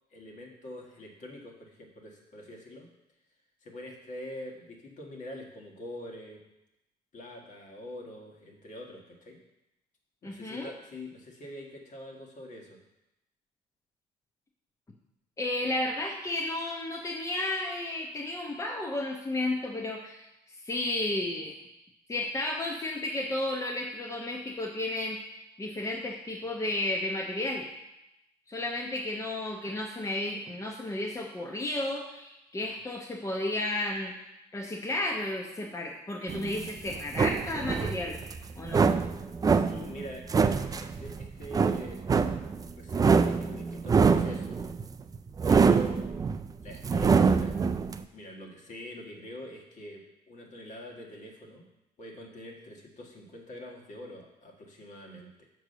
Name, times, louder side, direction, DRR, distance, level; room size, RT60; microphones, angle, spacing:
voice 1, 0.1-2.9 3.6-6.4 7.1-9.4 10.2-12.8 39.5-40.3 40.8-42.0 42.8-44.6 45.5-46.1 46.6-47.6 48.1-51.7 52.0-55.5, left 1 dB, 45° left, 1 dB, 1.7 m, -44 dB
voice 2, 10.2-10.7 15.4-21.5 22.1-27.7 28.5-34.1 34.5-38.1 38.5-38.9, left 1 dB, 20° left, -1 dB, 0.8 m, -33 dB
sound 1, 36.3-48.0, right 5 dB, 20° right, 0.3 m, -25 dB
6.2 x 4.6 x 6.6 m, 0.89 s
cardioid pair, 110°, 17 cm